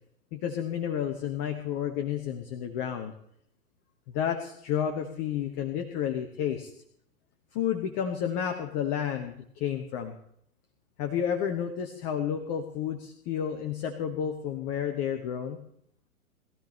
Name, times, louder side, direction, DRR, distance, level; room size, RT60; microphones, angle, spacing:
voice 1, 0.3-3.1 4.1-6.7 7.5-10.1 11.0-15.6, left 9 dB, 25° left, 5 dB, 1.0 m, -31 dB
21.0 x 13.5 x 3.2 m, 0.69 s
figure-of-eight pair, 110°, 45 cm